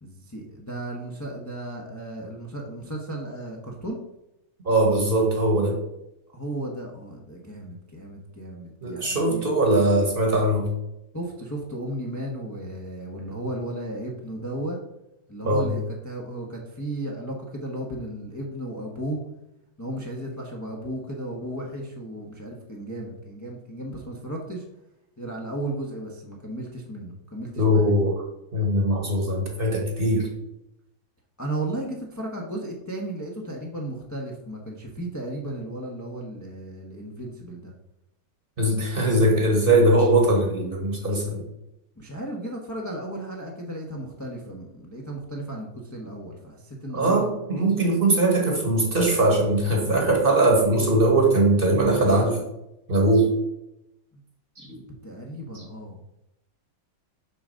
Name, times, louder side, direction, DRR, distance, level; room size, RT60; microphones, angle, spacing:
voice 1, 0.0-4.0 6.3-9.4 11.1-14.8 15.3-19.2 19.8-24.6 25.2-27.9 31.4-37.7 42.0-47.3 54.1-54.2 54.6-56.0, right 1 dB, 20° left, -1 dB, 0.4 m, -34 dB
voice 2, 4.6-5.8 8.8-10.7 15.4-15.7 27.6-28.2 28.5-30.3 38.6-41.4 46.9-52.4 52.9-53.3 54.6-54.7 55.5-55.6, right 1 dB, 30° right, 1 dB, 1.2 m, -21 dB
7.0 x 3.9 x 6.3 m, 0.87 s
omnidirectional pair, 2.2 m